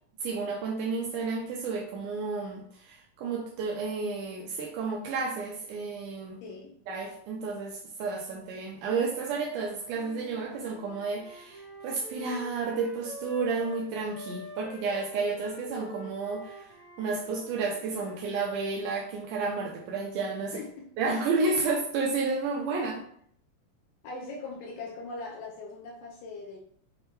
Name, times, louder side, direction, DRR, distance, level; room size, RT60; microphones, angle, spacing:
voice 1, 0.2-6.4 6.9-16.7 17.0-20.6 21.0-22.9, right 4 dB, 85° right, 0 dB, 1.8 m, -31 dB
voice 2, 6.4-6.7 20.5-20.9 22.8-22.9 24.0-26.6, left 3 dB, 80° left, -2 dB, 2.1 m, -40 dB
Wind instrument woodwind instrument, 9.9-18.2, right 1 dB, 40° left, 1.2 m, -46 dB
6.4 x 2.2 x 3.0 m, 0.63 s
omnidirectional pair, 4.2 m